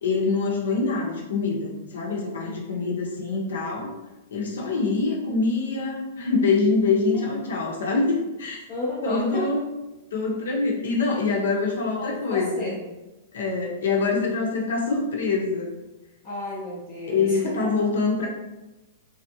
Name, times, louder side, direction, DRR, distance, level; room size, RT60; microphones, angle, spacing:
voice 1, 0.0-3.9 4.3-8.6 9.0-9.6 10.1-12.7 13.3-15.7 17.1-18.3, left 4 dB, 70° left, -1 dB, 0.8 m, -25 dB
voice 2, 2.4-3.0 8.7-9.5 12.0-12.8 16.2-17.5, equal, 25° left, -6 dB, 0.5 m, -32 dB
3.3 x 2.4 x 2.8 m, 1.0 s
hypercardioid pair, 180°, 0 cm